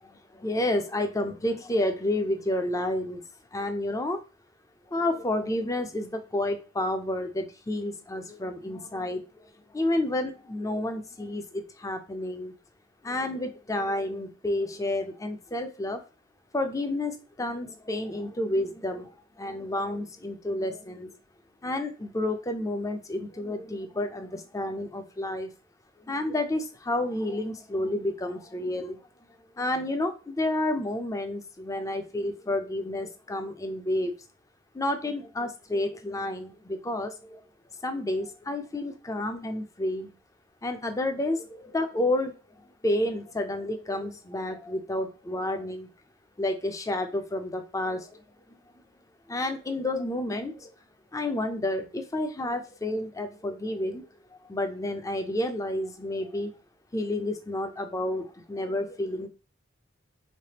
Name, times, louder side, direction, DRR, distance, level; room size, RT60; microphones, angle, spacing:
voice 1, 0.0-3.2 3.5-4.2 4.9-12.5 13.0-16.0 16.5-19.1 19.4-21.2 21.6-25.5 26.0-29.0 29.6-34.2 34.7-37.4 37.8-40.1 40.6-42.3 42.8-45.9 46.4-48.2 49.3-50.7 51.1-54.1 54.5-56.5 56.9-59.3, left 1 dB, 15° left, 7 dB, 0.4 m, -30 dB
3.5 x 3.3 x 2.8 m, 0.33 s
head